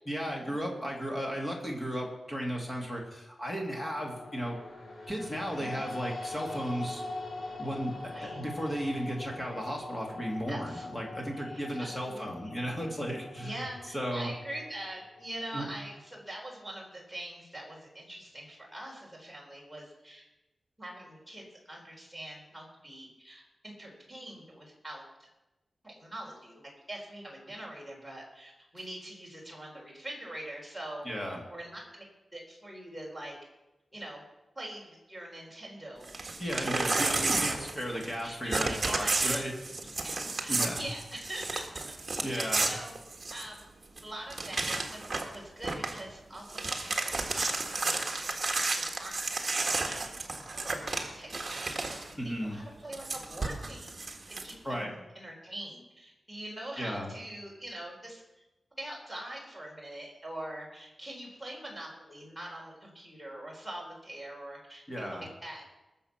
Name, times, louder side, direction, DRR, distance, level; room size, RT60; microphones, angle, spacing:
voice 1, 0.1-4.6 5.1-7.0 7.6-7.9 8.2-13.6 13.9-14.3 15.5-15.7 31.0-31.4 36.4-39.5 40.5-40.8 42.2-42.7 52.2-52.6 54.6-54.9 56.8-57.1 64.9-65.3, equal, 15° left, -1 dB, 2.6 m, -35 dB
sound 1, 3.8-16.0, left 2 dB, 60° left, 3.5 m, -43 dB
voice 2, 5.6-6.0 8.1-8.4 10.5-12.6 13.4-20.2 20.8-25.3 25.8-32.0 32.3-33.4 33.9-34.2 34.6-36.1 36.6-37.0 38.2-39.4 40.0-41.9 42.3-43.0 43.3-43.7 44.0-50.1 50.5-54.0 54.4-58.2 58.7-65.6, right 1 dB, ahead, -2 dB, 4.0 m, -44 dB
Crumpling crinkling / Tearing, 36.0-38.2 38.5-43.6 44.0-44.1 44.3-45.3 45.6-46.0 46.4-52.1 52.9-54.5, right 3 dB, 35° right, 1.6 m, -32 dB
21.0 x 7.0 x 5.9 m, 1.0 s
wide cardioid pair, 175°, 0 cm